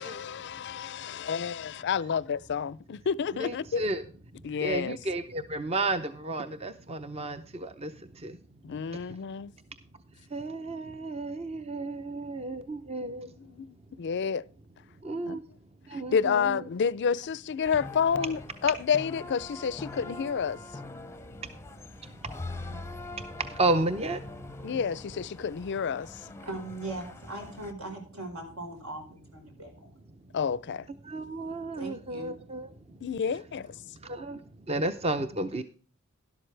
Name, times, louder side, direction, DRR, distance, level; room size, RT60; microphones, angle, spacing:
voice 1, 0.0-3.9 4.4-5.0 8.6-9.5 11.7-12.1 13.1-14.5 15.3-15.4 15.9-20.6 24.6-26.3 30.3-30.9 33.0-34.0, left 6 dB, 55° left, 0.4 m, -30 dB
voice 2, 3.4-4.0 4.6-7.4 7.6-7.9 8.2-8.3 10.3-13.3 15.0-15.4 15.9-16.6 23.6-24.2 31.1-32.7 34.1-34.4 34.7-35.6, right 2 dB, 30° right, 0.6 m, -32 dB
sound 1, 17.6-27.7, left 2 dB, 10° left, 0.6 m, -43 dB
voice 3, 26.4-29.9 31.7-32.3, right 2 dB, 80° right, 4.6 m, -39 dB
12.0 x 11.5 x 3.3 m
head